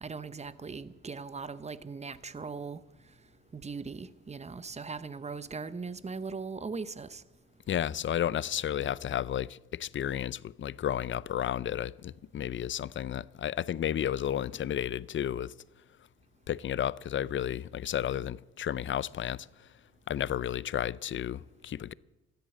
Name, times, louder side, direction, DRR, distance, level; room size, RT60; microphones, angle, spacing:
voice 1, 0.0-2.8 3.5-7.2, right 4 dB, 20° right, 0.8 m, -39 dB
voice 2, 7.7-15.5 16.5-19.5 20.1-21.9, left 10 dB, 40° left, 0.5 m, -32 dB
14.0 x 10.5 x 8.4 m
cardioid pair, 90°, 30 cm